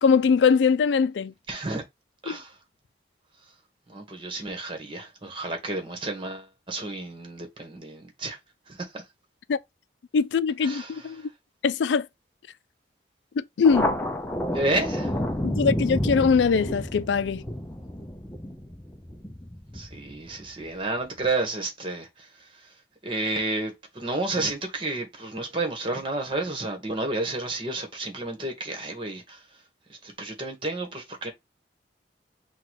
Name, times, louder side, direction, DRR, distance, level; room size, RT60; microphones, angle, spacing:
voice 1, 0.0-1.3 2.3-2.4 9.5-9.6 10.1-11.2 11.6-12.1 13.4-14.0 15.4-17.4, left 5 dB, 80° left, 0.4 m, -22 dB
voice 2, 1.5-1.8 2.2-2.6 3.9-8.4 8.7-9.0 10.6-11.3 14.5-15.2 19.7-29.6 29.9-31.3, right 2 dB, 30° right, 1.2 m, -31 dB
Thunder, 13.6-20.7, left 1 dB, 10° left, 0.5 m, -30 dB
3.9 x 2.3 x 4.6 m
head